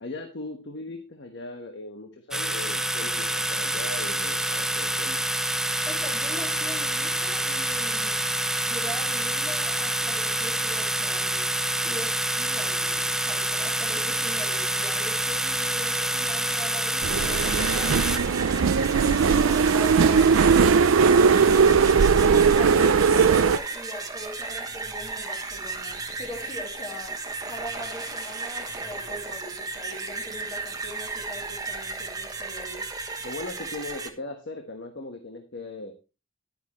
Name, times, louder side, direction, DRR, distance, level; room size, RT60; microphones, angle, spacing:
voice 1, 0.0-5.2 33.2-35.9, left 2 dB, 60° left, 4 dB, 1.3 m, -38 dB
sound 1, 2.3-18.2, right 1 dB, 5° right, 0.5 m, -27 dB
voice 2, 5.9-8.2 8.7-11.5 11.8-18.0 19.1-20.4 22.2-27.2 27.5-32.9, left 1 dB, 25° left, -4 dB, 2.8 m, -41 dB
sound 2, 17.0-23.6, right 5 dB, 75° right, 0.4 m, -19 dB
sound 3, 17.2-34.1, right 3 dB, 20° right, 1.2 m, -34 dB
11.0 x 9.3 x 3.1 m, 0.31 s
head